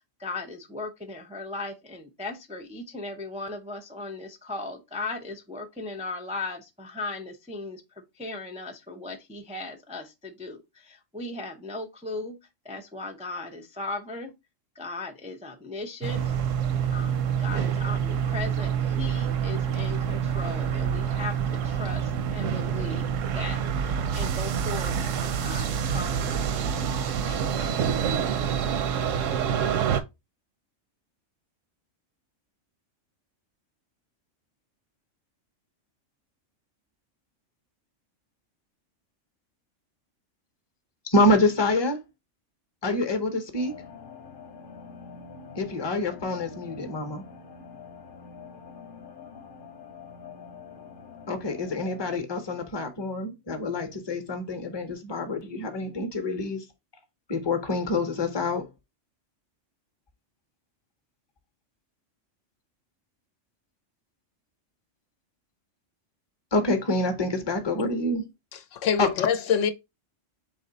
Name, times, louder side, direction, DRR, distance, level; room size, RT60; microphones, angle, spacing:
voice 1, 0.2-7.8 8.1-12.4 12.6-14.3 14.8-16.4 16.9-27.0 27.2-28.6, left 3 dB, 10° right, 0.3 m, -37 dB
sound 1, 16.0-30.0, right 8 dB, 85° right, 1.0 m, -27 dB
voice 2, 41.0-42.0 42.8-43.8 45.6-47.2 51.3-56.7 57.3-58.7 66.5-68.2 69.0-69.1, left 2 dB, 25° left, 0.7 m, -26 dB
sound 2, 43.5-52.2, left 5 dB, 45° left, 1.0 m, -45 dB
voice 3, 68.7-69.7, left 7 dB, 80° left, 1.0 m, -24 dB
4.1 x 3.1 x 3.9 m
omnidirectional pair, 1.3 m